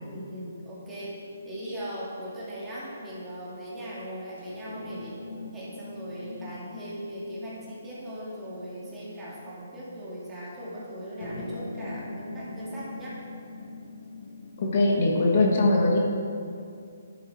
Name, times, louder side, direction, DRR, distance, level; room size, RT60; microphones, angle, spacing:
voice 1, 0.0-5.2 5.5-13.2, equal, 10° right, -8 dB, 2.5 m, -39 dB
sound 1, 0.8-2.9 4.4-9.8 11.2-15.4, left 2 dB, 75° left, 2.2 m, -42 dB
voice 2, 14.6-16.0, left 2 dB, 50° left, -1 dB, 1.5 m, -21 dB
10.5 x 8.0 x 4.3 m, 2.4 s
hypercardioid pair, 160°, 0 cm